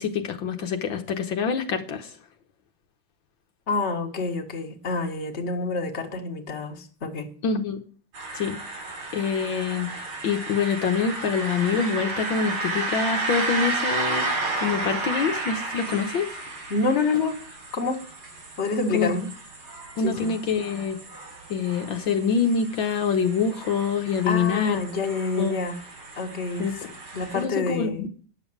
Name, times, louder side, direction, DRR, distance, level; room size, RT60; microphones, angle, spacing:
voice 1, 0.0-2.1 7.4-7.8 8.3-8.6 9.1-16.3 18.9-19.2 20.0-21.0 21.5-24.8 25.4-25.5 26.6-26.7 27.3-28.1, left 6 dB, 70° left, 5 dB, 1.8 m, -25 dB
voice 2, 3.7-7.3 16.7-17.4 17.7-18.0 18.6-19.3 20.0-20.3 24.2-25.8 26.2-26.9 27.1-28.1, left 3 dB, 35° left, 3 dB, 1.8 m, -27 dB
sound 1, 8.1-27.4, right 2 dB, 90° right, 4.6 m, -33 dB
9.9 x 7.2 x 8.5 m, 0.42 s
omnidirectional pair, 2.3 m